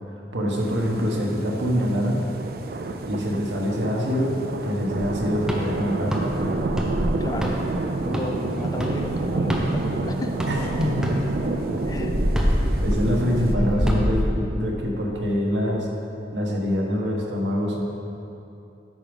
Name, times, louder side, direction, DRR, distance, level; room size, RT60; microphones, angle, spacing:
voice 1, 0.3-2.3 3.1-4.3 4.6-6.5 10.5-11.1 12.8-15.9 16.3-17.8, equal, 85° right, -1 dB, 1.3 m, -25 dB
sound 1, 0.6-13.5, right 2 dB, 55° right, 0.5 m, -29 dB
sound 2, 5.0-10.0 10.4-14.2, equal, 5° right, 0.8 m, -26 dB
voice 2, 7.2-7.6 8.1-10.4 11.9-12.2, left 1 dB, 20° left, 4 dB, 0.4 m, -33 dB
8.6 x 6.0 x 5.2 m, 2.8 s
head